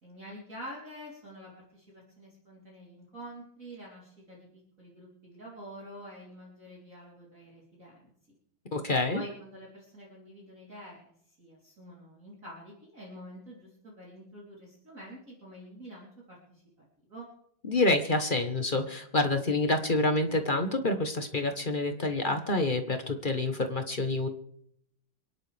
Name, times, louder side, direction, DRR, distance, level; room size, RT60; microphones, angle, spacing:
voice 1, 0.0-8.1 9.1-17.3, equal, 35° right, -5 dB, 3.9 m, -47 dB
voice 2, 8.7-9.2 17.7-24.3, left 2 dB, 35° left, 6 dB, 0.9 m, -27 dB
28.0 x 11.0 x 3.4 m, 0.69 s
omnidirectional pair, 2.4 m